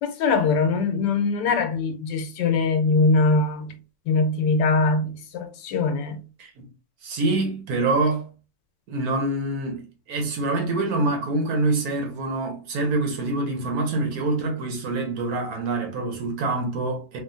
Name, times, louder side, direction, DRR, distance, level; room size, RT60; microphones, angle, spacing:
voice 1, 0.0-3.7 4.1-6.2, left 3 dB, 85° left, 1.3 m, -22 dB
voice 2, 7.0-8.3 8.9-17.2, right 2 dB, 65° right, 1.2 m, -25 dB
3.4 x 2.4 x 2.4 m
omnidirectional pair, 1.8 m